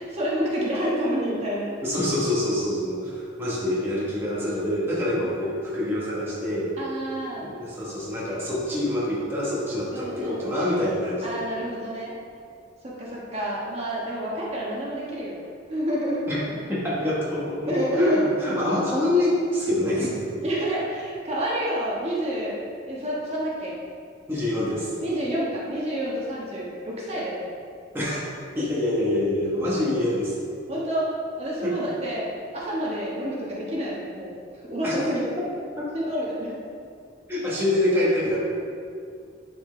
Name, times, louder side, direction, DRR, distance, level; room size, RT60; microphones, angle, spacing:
voice 1, 0.0-1.7 6.8-7.4 9.9-10.4 11.2-12.1 12.8-15.4 15.7-16.2 17.7-18.2 20.4-22.6 22.9-23.8 25.0-27.4 30.7-31.1 31.4-32.2 32.5-34.3 34.7-35.3 35.9-36.6, equal, 35° right, -6 dB, 1.4 m, -28 dB
voice 2, 1.8-6.7 7.4-11.4 16.3-16.4 16.7-20.4 24.3-24.9 27.9-28.2 28.5-30.3 31.6-31.8 34.8-35.0 35.4-35.5 35.8-36.0 37.3-38.4, left 1 dB, 10° right, -8 dB, 1.2 m, -26 dB
11.0 x 4.4 x 3.3 m, 2.4 s
head